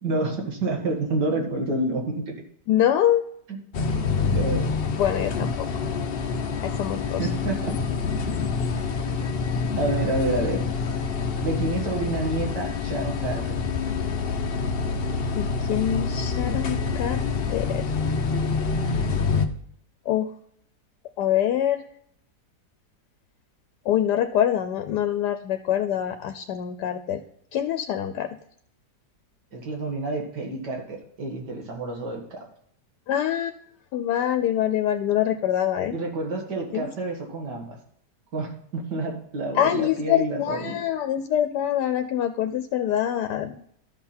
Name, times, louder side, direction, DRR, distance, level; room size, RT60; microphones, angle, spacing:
voice 1, 0.0-2.2 3.5-3.6 4.2-4.7 7.2-7.7 9.8-10.7 11.4-13.6 29.5-32.5 35.9-37.8 38.3-40.8, right 2 dB, 80° right, 2 dB, 2.4 m, -28 dB
voice 2, 2.7-3.3 5.0-5.7 6.6-7.3 15.4-17.8 20.1-20.3 21.2-21.8 23.9-27.2 27.5-28.3 33.1-33.5 33.9-36.0 36.7-36.9 39.5-43.6, left 10 dB, 80° left, 8 dB, 1.2 m, -25 dB
sound 1, 3.7-19.5, left 5 dB, 50° left, 0.7 m, -27 dB
12.5 x 5.8 x 4.2 m, 0.68 s
omnidirectional pair, 1.8 m